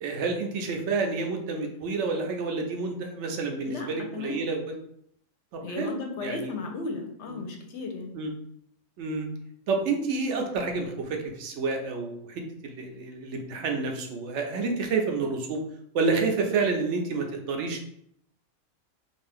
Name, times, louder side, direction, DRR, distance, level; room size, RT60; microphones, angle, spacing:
voice 1, 0.0-4.6 5.5-6.5 7.3-7.4 8.1-8.3 9.0-9.3 9.7-15.6 15.9-17.9, right 4 dB, 70° right, 3 dB, 0.8 m, -29 dB
voice 2, 3.6-4.5 5.6-8.1, left 3 dB, 70° left, 4 dB, 0.8 m, -35 dB
2.6 x 2.5 x 3.4 m, 0.72 s
omnidirectional pair, 1.3 m